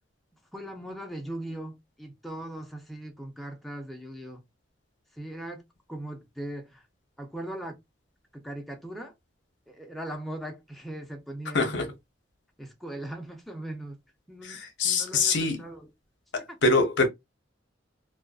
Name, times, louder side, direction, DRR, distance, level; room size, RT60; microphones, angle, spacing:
voice 1, 0.5-4.4 5.1-6.9 7.2-7.8 8.3-9.1 9.7-11.9 12.6-15.9 16.3-16.6, right 1 dB, ahead, 0.5 m, -39 dB
voice 2, 11.5-11.9 14.4-15.6 16.3-17.1, left 3 dB, 70° left, 0.6 m, -24 dB
2.4 x 2.3 x 2.3 m
head